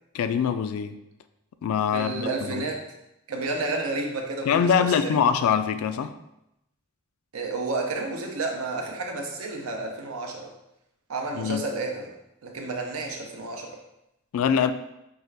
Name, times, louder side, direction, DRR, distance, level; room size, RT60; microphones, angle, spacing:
voice 1, 0.1-1.0 1.6-2.7 4.5-6.1 11.3-11.6 14.3-14.7, left 7 dB, 85° left, 13 dB, 0.3 m, -24 dB
voice 2, 1.9-2.8 3.3-5.2 7.3-10.5 11.1-12.1 12.4-13.8, right 3 dB, 90° right, 2 dB, 0.7 m, -31 dB
5.2 x 2.4 x 3.2 m, 0.86 s
head